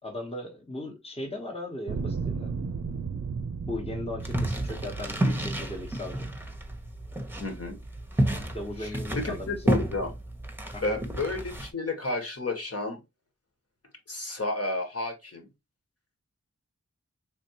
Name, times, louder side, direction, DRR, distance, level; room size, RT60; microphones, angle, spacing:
voice 1, 0.0-2.5 3.6-6.3 8.5-9.6 10.7-11.0, left 1 dB, 20° left, 1.1 m, -37 dB
sound 1, 1.9-7.1 7.8-7.9, right 5 dB, 65° right, 0.6 m, -35 dB
sound 2, 4.2-11.7, right 1 dB, 5° right, 1.0 m, -31 dB
voice 2, 7.4-7.7 8.8-10.1 10.8-13.0 14.1-15.5, left 2 dB, 55° left, 1.5 m, -31 dB
4.3 x 3.5 x 2.9 m
wide cardioid pair, 65°, 29 cm